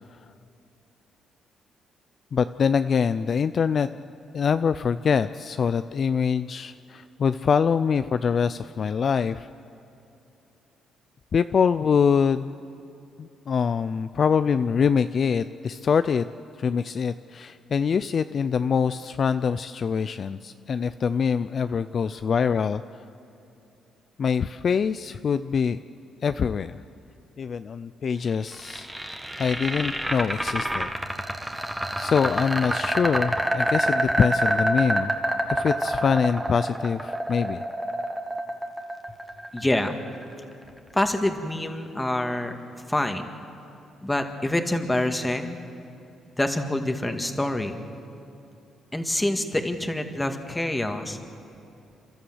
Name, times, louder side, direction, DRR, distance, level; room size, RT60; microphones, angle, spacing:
voice 1, 2.3-3.9 4.3-9.5 11.3-12.5 13.2-16.3 16.6-23.0 24.2-25.8 26.2-26.7 27.4-28.9 29.4-30.9 32.0-35.1 35.5-37.6, left 6 dB, 50° left, 11 dB, 0.5 m, -24 dB
sound 1, 28.3-40.3, right 1 dB, 10° right, 1.7 m, -27 dB
voice 2, 39.5-40.0 40.9-42.5 42.9-43.3 44.0-45.6 46.4-47.8 48.9-51.2, left 1 dB, 10° left, 6 dB, 1.9 m, -26 dB
30.0 x 13.0 x 7.9 m, 2.9 s
cardioid pair, 90°, 0 cm